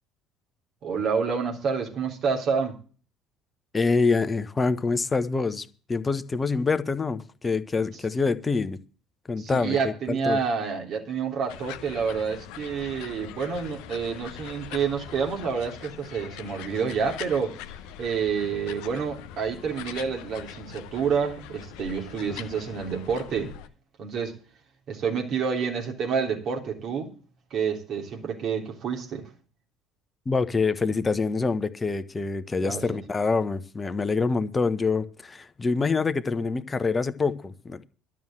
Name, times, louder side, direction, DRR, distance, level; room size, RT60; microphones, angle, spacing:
voice 1, 0.8-2.8 9.4-17.6 18.0-23.5 24.0-24.4 24.9-27.1 27.5-29.3 32.6-33.0, right 6 dB, 50° right, 3.4 m, -28 dB
voice 2, 3.7-8.8 9.3-10.4 30.3-37.9, left 4 dB, 25° left, 1.1 m, -26 dB
sound 1, 11.5-23.7, left 10 dB, 65° left, 1.0 m, -42 dB
12.5 x 7.3 x 7.8 m
figure-of-eight pair, 60°, 0 cm